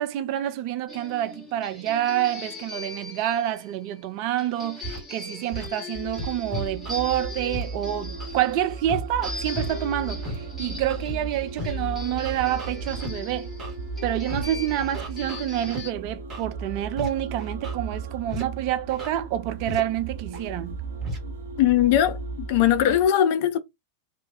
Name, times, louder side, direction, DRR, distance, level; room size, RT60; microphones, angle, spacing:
voice 1, 0.0-13.5 14.0-20.8, right 12 dB, 45° right, 0.4 m, -28 dB
sound 1, 0.9-15.9, left 3 dB, 5° left, 1.2 m, -40 dB
Scratching (performance technique), 4.8-5.0 5.5-5.7 6.2-7.0 7.5-7.6 8.2-8.3 8.9-9.7 10.2-10.4 10.9-11.1 11.6-11.7 12.2-13.1 13.6-13.7 14.3-14.5 14.9-15.8 16.3-16.5 17.0-17.1 17.4-17.8 18.3-18.4 18.9-19.1 19.7-19.8 20.3-20.5 21.0-21.2, right 1 dB, 25° right, 1.1 m, -34 dB
sound 2, 5.9-23.1, right 4 dB, 60° right, 0.7 m, -36 dB
voice 2, 21.6-23.6, left 11 dB, 50° left, 0.4 m, -20 dB
3.0 x 2.1 x 2.6 m
figure-of-eight pair, 90°, 0 cm